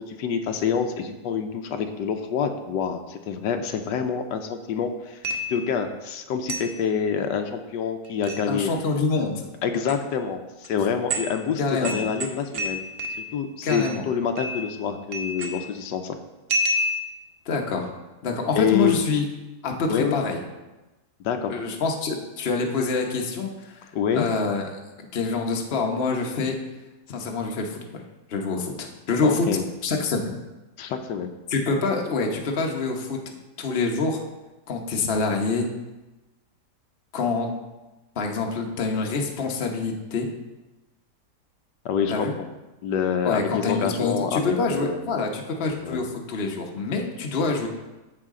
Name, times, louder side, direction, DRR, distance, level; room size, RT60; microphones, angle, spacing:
voice 1, 0.0-5.2 5.5-8.7 9.6-12.8 13.1-16.2 18.5-18.9 19.9-20.2 21.2-21.5 23.9-24.3 29.2-29.6 30.8-31.3 41.8-42.5 42.8-45.0 45.8-46.0, left 7 dB, 90° left, 6 dB, 1.3 m, -27 dB
sound 1, 5.2-5.7 6.5-6.8 8.0-8.4 9.7-9.9 10.6-10.7 11.1-11.4 11.8-13.4 13.7-14.0 14.4-14.8 15.1-15.8 16.5-17.2, equal, 45° right, 0.8 m, -29 dB
voice 2, 8.5-9.4 11.6-12.0 13.6-14.0 17.5-17.9 18.2-19.2 19.6-20.4 21.5-23.8 24.1-24.7 25.0-26.6 27.1-28.0 28.3-29.5 29.8-30.4 31.5-33.2 33.6-34.2 34.7-35.7 37.1-37.5 38.2-40.3 42.1-42.3 43.2-47.7, left 4 dB, 40° left, 2 dB, 1.1 m, -26 dB
13.5 x 4.9 x 3.7 m, 1.1 s
omnidirectional pair, 1.8 m